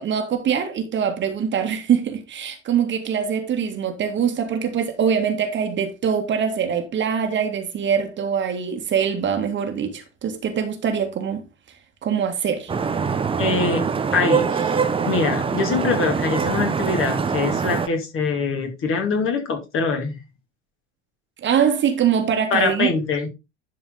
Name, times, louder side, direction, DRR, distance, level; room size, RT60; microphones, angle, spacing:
voice 1, 0.0-11.4 12.0-12.7 21.4-22.9, right 7 dB, 30° right, 1.8 m, -23 dB
Vehicle horn car horn honking / Traffic noise roadway noise, 12.7-17.9, right 6 dB, 15° right, 0.9 m, -23 dB
voice 2, 13.4-13.9 14.1-20.2 22.5-23.3, left 4 dB, 35° left, 2.6 m, -23 dB
11.0 x 4.9 x 3.9 m
figure-of-eight pair, 70°, 35 cm